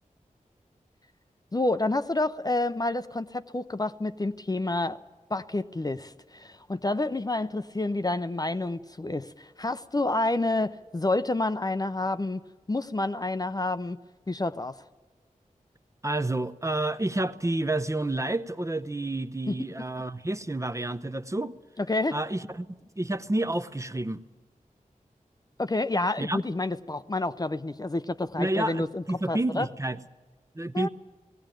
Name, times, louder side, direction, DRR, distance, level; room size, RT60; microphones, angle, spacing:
voice 1, 1.5-5.0 5.3-12.4 12.7-14.0 14.3-14.8 19.5-19.6 21.8-22.2 25.6-29.7 30.7-30.9, left 2 dB, 30° left, 11 dB, 0.6 m, -29 dB
voice 2, 16.0-21.5 22.1-22.7 23.0-24.2 26.2-26.4 28.4-30.0 30.5-30.9, right 1 dB, 20° right, 9 dB, 0.7 m, -29 dB
18.0 x 17.0 x 9.1 m, 1.3 s
wide cardioid pair, 65°, 14 cm